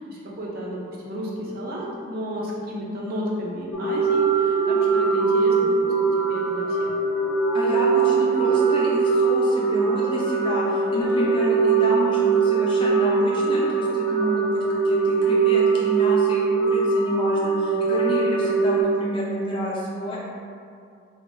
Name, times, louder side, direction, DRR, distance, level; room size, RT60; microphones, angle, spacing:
voice 1, 0.0-5.5 5.8-5.9 6.3-7.0 10.9-11.3, equal, 45° right, -5 dB, 0.6 m, -32 dB
sound 1, 3.7-18.8, right 5 dB, 90° left, 0.5 m, -21 dB
voice 2, 7.5-14.6 14.8-20.2, left 1 dB, 25° left, -6 dB, 0.4 m, -29 dB
2.6 x 2.2 x 4.0 m, 2.4 s
head